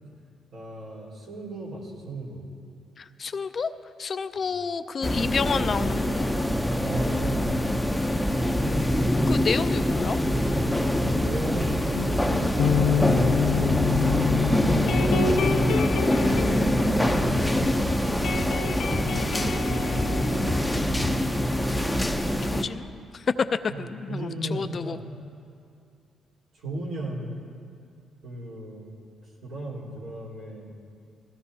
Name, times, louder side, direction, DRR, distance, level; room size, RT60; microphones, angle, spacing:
voice 1, 0.5-2.4 6.8-8.1 11.2-15.4 16.0-17.5 18.3-19.4 19.7-21.5 23.7-25.1 26.5-27.4 28.2-28.9 29.4-30.7, right 1 dB, 80° right, -5 dB, 4.1 m, -37 dB
voice 2, 3.0-3.7 4.0-6.4 9.3-10.2 22.4-23.2 23.8-25.0, left 5 dB, 45° left, 11 dB, 0.5 m, -30 dB
sound 1, 5.0-22.6, left 1 dB, 5° left, 0.7 m, -24 dB
sound 2, 10.6-21.1, equal, 25° right, 1.2 m, -35 dB
sound 3, 11.9-17.8 18.0-21.5, left 7 dB, 80° left, 0.6 m, -28 dB
19.0 x 15.5 x 2.8 m, 2.4 s
cardioid pair, 90°, 0 cm